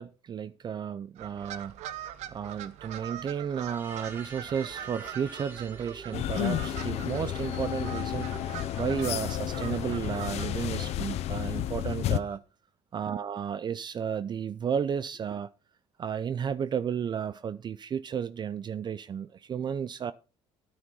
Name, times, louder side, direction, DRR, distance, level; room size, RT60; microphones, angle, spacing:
voice 1, 0.0-1.8 2.3-12.4 12.9-15.5 16.0-20.1, right 7 dB, 40° right, 0.5 m, -33 dB
sound 1, 1.2-10.7, right 11 dB, 70° right, 0.9 m, -43 dB
sound 2, 3.6-12.4, right 3 dB, 15° right, 1.9 m, -48 dB
sound 3, 6.1-12.2, left 12 dB, 65° left, 0.7 m, -31 dB
9.8 x 9.4 x 4.0 m
supercardioid pair, 90°, 12 cm